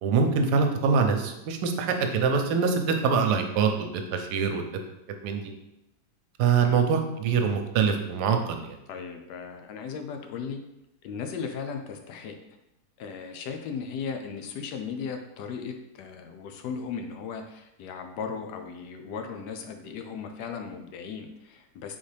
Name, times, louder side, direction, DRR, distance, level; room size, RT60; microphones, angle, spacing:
voice 1, 0.0-4.6 5.2-5.4 6.4-8.8, right 5 dB, 80° right, 5 dB, 1.2 m, -24 dB
voice 2, 8.9-10.6 11.0-12.3 13.0-22.0, left 6 dB, 90° left, 5 dB, 1.2 m, -36 dB
4.0 x 3.7 x 3.3 m, 0.88 s
omnidirectional pair, 1.7 m